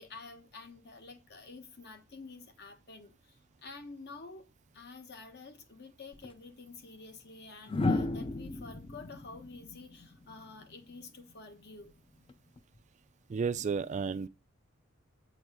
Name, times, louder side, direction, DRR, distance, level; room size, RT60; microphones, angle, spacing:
voice 1, 0.0-4.5 4.7-11.9, left 3 dB, 50° left, 1.1 m, -49 dB
sound 1, 6.1-6.3 7.7-10.7 12.3-12.6, left 2 dB, 25° left, 0.5 m, -34 dB
voice 2, 13.3-14.3, right 5 dB, 35° right, 0.3 m, -32 dB
7.6 x 4.0 x 4.6 m
head